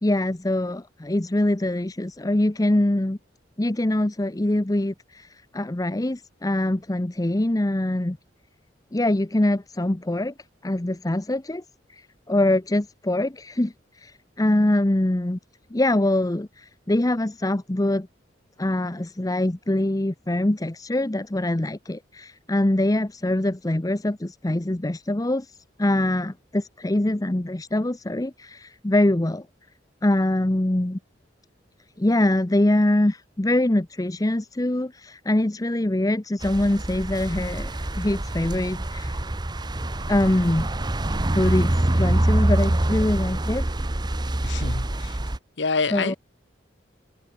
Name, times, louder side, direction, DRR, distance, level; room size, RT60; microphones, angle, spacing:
voice 1, 0.0-3.2 3.6-8.2 8.9-10.3 10.6-11.6 11.9-15.4 15.7-18.1 18.6-29.5 30.0-31.0 32.0-39.2 40.1-40.7 41.3-43.6 45.9-46.1, left 1 dB, 20° left, 0.7 m, -24 dB
sound 1, 36.4-45.4, right 1 dB, 25° right, 0.9 m, -25 dB
voice 2, 44.4-45.2 45.6-46.2, left 4 dB, 75° left, 1.3 m, -27 dB
open air
head